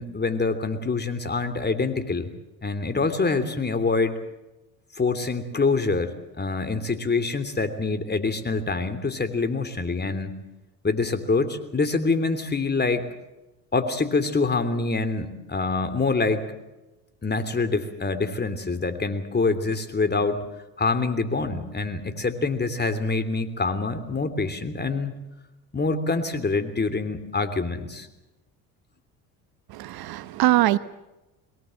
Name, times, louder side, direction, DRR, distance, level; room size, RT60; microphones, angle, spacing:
voice 1, 0.0-2.3 2.6-4.1 5.0-10.4 10.8-13.0 13.7-16.5 17.2-20.4 20.8-25.1 25.7-28.1, left 3 dB, 25° left, 10 dB, 3.2 m, -25 dB
voice 2, 29.7-30.8, right 15 dB, 60° right, 14 dB, 1.0 m, -22 dB
22.5 x 19.0 x 7.8 m, 1.0 s
hypercardioid pair, 75°, 43 cm